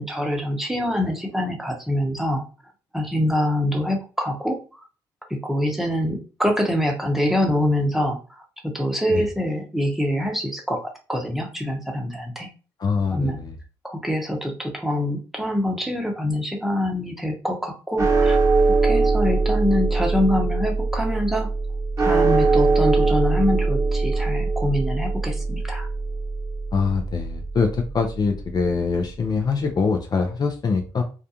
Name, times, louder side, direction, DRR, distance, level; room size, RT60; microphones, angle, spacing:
voice 1, 0.0-2.4 2.9-4.8 5.4-12.5 13.1-13.4 13.8-18.4 18.8-21.5 22.0-25.9, left 1 dB, 5° right, 1 dB, 0.8 m, -25 dB
voice 2, 12.8-13.6 26.7-31.0, left 4 dB, 40° left, 4 dB, 0.5 m, -23 dB
sound 1, 18.0-28.4, right 3 dB, 30° right, 0.9 m, -22 dB
2.3 x 2.2 x 2.8 m, 0.34 s
hypercardioid pair, 50°, 10 cm